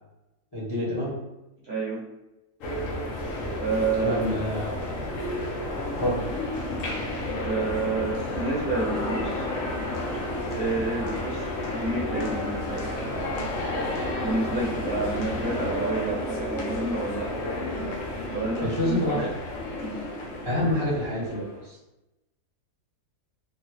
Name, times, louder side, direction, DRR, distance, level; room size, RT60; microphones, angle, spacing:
voice 1, 0.5-1.2 3.9-4.7 6.0-6.3 18.6-19.3 20.4-21.8, left 1 dB, 20° left, -8 dB, 0.9 m, -27 dB
voice 2, 1.6-2.0 3.6-4.3 7.4-9.5 10.5-13.2 14.2-17.3 18.3-19.2 19.8-20.0, right 3 dB, 50° right, -7 dB, 1.2 m, -29 dB
sound 1, 2.6-21.7, left 1 dB, 70° left, 1.0 m, -31 dB
3.8 x 2.1 x 3.0 m, 0.96 s
omnidirectional pair, 1.5 m